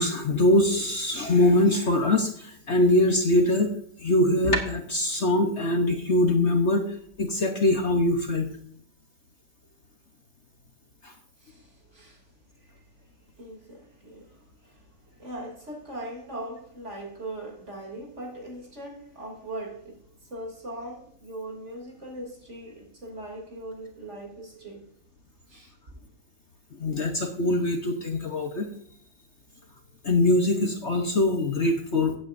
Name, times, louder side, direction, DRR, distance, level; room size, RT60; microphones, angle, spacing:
voice 1, 0.0-3.7 4.0-6.9 7.2-8.5 11.0-11.1 26.8-28.7 30.0-32.1, left 1 dB, 45° left, 1.3 m, -23 dB
voice 2, 11.4-12.3 12.6-12.8 13.4-20.0 20.3-24.9 25.5-26.0, right 1 dB, 45° right, 3.3 m, -40 dB
15.5 x 8.8 x 2.6 m
omnidirectional pair, 1.7 m